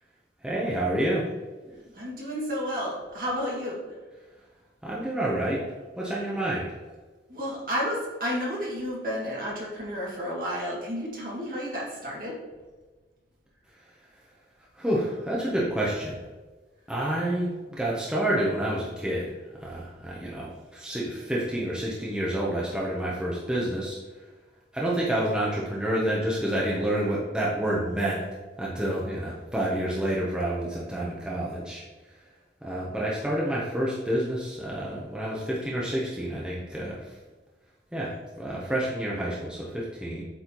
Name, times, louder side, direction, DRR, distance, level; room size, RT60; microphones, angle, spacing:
voice 1, 0.4-1.3 1.6-1.9 4.8-5.6 6.0-6.7 14.8-16.2 16.9-24.0 24.7-28.2 28.6-31.9 32.6-37.1 37.9-40.2, right 1 dB, 5° right, -6 dB, 0.7 m, -29 dB
voice 2, 1.9-3.8 7.3-12.4, equal, 50° right, -5 dB, 1.9 m, -31 dB
7.9 x 4.3 x 2.9 m, 1.3 s
head